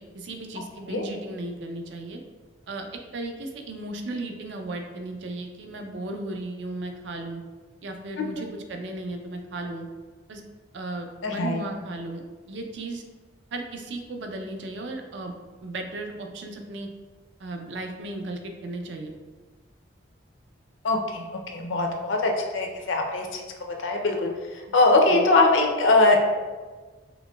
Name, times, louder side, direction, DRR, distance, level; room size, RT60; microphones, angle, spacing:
voice 1, 0.0-2.2 2.7-7.4 7.8-9.9 10.3-10.4 10.7-13.0 13.5-15.3 15.6-16.9 17.4-19.1 25.1-25.2, right 2 dB, 65° right, 4 dB, 0.4 m, -35 dB
voice 2, 11.2-11.6 20.8-21.2 21.5-26.2, left 2 dB, 75° left, 2 dB, 0.5 m, -22 dB
4.0 x 2.9 x 2.3 m, 1.4 s
head